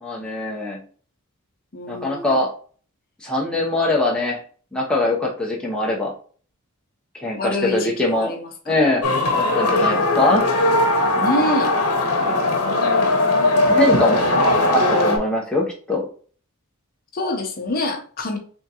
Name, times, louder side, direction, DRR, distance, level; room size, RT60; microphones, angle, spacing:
voice 1, 0.0-0.8 1.9-2.5 3.2-4.4 4.7-6.1 7.1-8.3 8.7-9.0 9.3-10.5 12.2-12.4 13.7-14.2 14.7-16.1, left 2 dB, 5° left, -3 dB, 0.6 m, -22 dB
voice 2, 1.7-2.4 7.4-9.0 9.6-10.3 11.2-11.8 13.5-13.7 14.0-14.3 17.1-18.4, left 1 dB, 40° left, 3 dB, 0.7 m, -27 dB
sound 1, 9.0-15.2, left 2 dB, 75° left, 0.9 m, -19 dB
3.5 x 3.5 x 2.8 m, 0.43 s
head